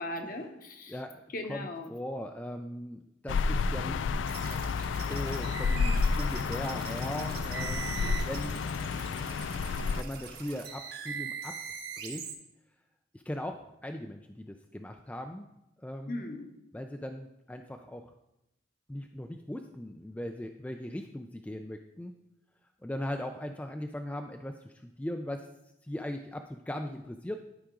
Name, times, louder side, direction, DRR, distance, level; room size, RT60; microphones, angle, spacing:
voice 1, 0.0-0.9 1.3-1.9 7.8-8.2 16.1-16.5, left 1 dB, 50° left, 5 dB, 0.9 m, -38 dB
voice 2, 0.9-1.2 1.5-4.0 5.0-7.8 8.2-8.7 9.9-11.6 12.0-12.3 13.1-15.5 15.8-16.2 16.7-18.1 18.9-22.1 22.8-25.5 25.8-27.4, left 1 dB, 10° left, 5 dB, 0.3 m, -39 dB
sound 1, 3.3-10.0, left 4 dB, 85° left, 0.4 m, -30 dB
sound 2, 4.3-12.3, right 6 dB, 55° right, 1.2 m, -42 dB
11.5 x 4.9 x 3.7 m, 0.86 s
head